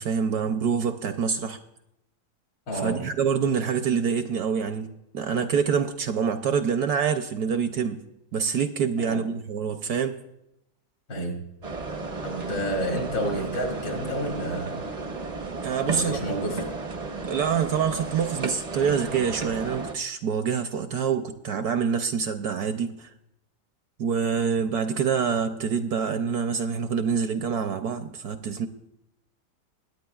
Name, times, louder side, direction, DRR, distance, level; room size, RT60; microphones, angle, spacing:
voice 1, 0.0-1.6 2.7-8.0 8.3-10.2 15.6-16.2 17.3-23.1 24.0-28.7, right 6 dB, 70° right, 8 dB, 1.0 m, -26 dB
voice 2, 2.7-3.0 9.0-9.2 11.1-11.5 12.2-14.8 15.8-16.7, equal, 80° left, 1 dB, 2.9 m, -30 dB
sound 1, 11.6-19.9, right 3 dB, 50° right, 0.4 m, -34 dB
21.5 x 9.3 x 2.3 m, 0.84 s
omnidirectional pair, 2.0 m